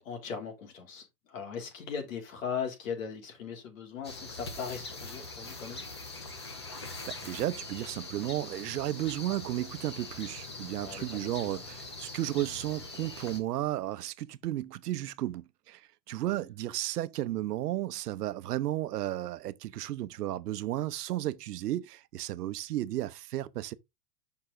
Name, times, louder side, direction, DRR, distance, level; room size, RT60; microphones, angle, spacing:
voice 1, 0.0-5.8 10.8-11.7 16.3-16.5, left 6 dB, 55° left, 2.8 m, -39 dB
sound 1, 4.0-13.4, left 3 dB, 20° left, 0.4 m, -43 dB
voice 2, 7.1-23.7, right 14 dB, 90° right, 0.8 m, -33 dB
6.9 x 5.7 x 3.6 m
supercardioid pair, 175°, 46 cm